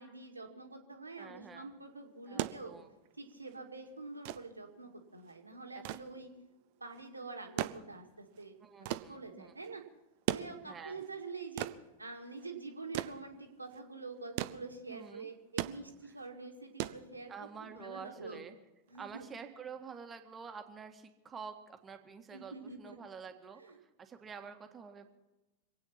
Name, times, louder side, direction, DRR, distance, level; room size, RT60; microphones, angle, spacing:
voice 1, 0.0-2.7 3.2-6.3 6.8-9.8 10.3-11.7 12.0-18.4 18.9-19.3 22.3-23.0 23.6-23.8, right 3 dB, 80° right, 3 dB, 2.1 m, -46 dB
voice 2, 1.2-1.7 2.3-2.9 5.7-5.8 8.6-9.5 10.7-11.0 14.9-15.3 17.3-18.5 19.0-23.6 24.0-25.1, right 6 dB, 20° right, 6 dB, 1.8 m, -48 dB
sound 1, 2.1-17.7 18.9-19.0, right 15 dB, 50° right, 0.7 m, -41 dB
26.0 x 9.0 x 5.8 m, 1.0 s
figure-of-eight pair, 90°, 0 cm